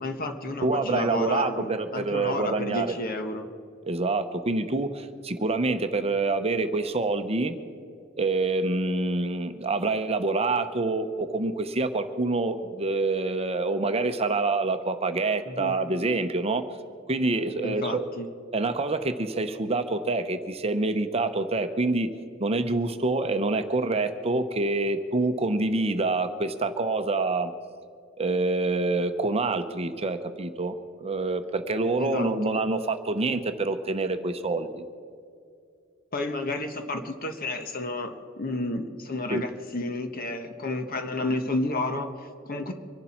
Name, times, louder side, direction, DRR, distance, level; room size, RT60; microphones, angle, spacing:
voice 1, 0.0-3.5 15.4-15.7 17.6-18.3 32.0-32.3 36.1-42.7, left 2 dB, 45° left, 6 dB, 1.3 m, -31 dB
voice 2, 0.6-2.9 3.9-7.5 8.2-16.6 17.1-18.1 18.5-22.1 22.4-27.5 28.2-30.7 31.0-34.8 39.3-39.4, right 3 dB, 30° right, 8 dB, 0.8 m, -26 dB
24.5 x 11.5 x 4.4 m, 2.4 s
head